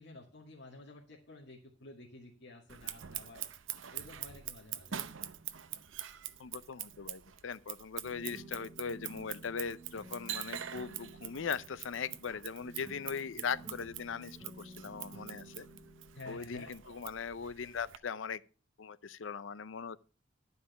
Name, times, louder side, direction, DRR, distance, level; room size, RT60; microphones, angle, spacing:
voice 1, 0.0-3.5 3.9-5.0 16.1-16.7, left 2 dB, 65° left, 2.2 m, -51 dB
Scissors, 2.7-18.0, right 11 dB, 80° right, 0.7 m, -45 dB
voice 2, 6.4-15.7 16.3-18.4 18.8-20.0, left 6 dB, 80° left, 0.6 m, -40 dB
sound 1, 8.0-17.3, right 2 dB, 5° right, 3.0 m, -53 dB
12.0 x 5.5 x 6.8 m
head